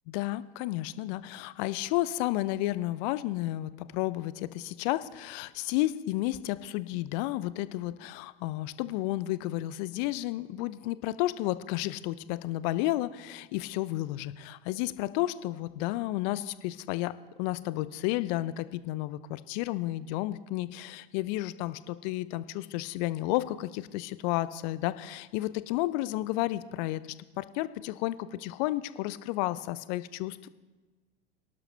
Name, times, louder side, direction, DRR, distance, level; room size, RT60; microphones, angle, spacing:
voice 1, 0.1-17.1 17.4-27.0 27.4-30.5, left 16 dB, 50° left, 16 dB, 0.6 m, -32 dB
23.5 x 12.0 x 3.4 m, 1.3 s
figure-of-eight pair, 80°, 29 cm